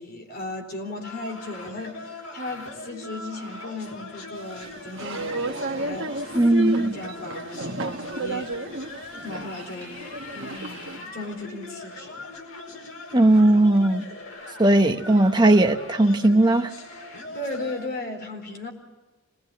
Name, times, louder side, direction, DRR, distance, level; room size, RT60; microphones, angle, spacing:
voice 1, 0.0-6.4 6.9-8.5 9.2-10.0 10.3-12.3 17.3-18.7, left 2 dB, 45° left, 4.1 m, -36 dB
sound 1, 1.0-17.9, left 2 dB, 80° left, 5.1 m, -41 dB
sound 2, 4.4-11.0, right 2 dB, 60° right, 1.4 m, -32 dB
voice 2, 6.3-6.9 13.1-14.1 14.6-16.7, right 1 dB, 20° right, 1.1 m, -18 dB
27.0 x 19.5 x 9.5 m
head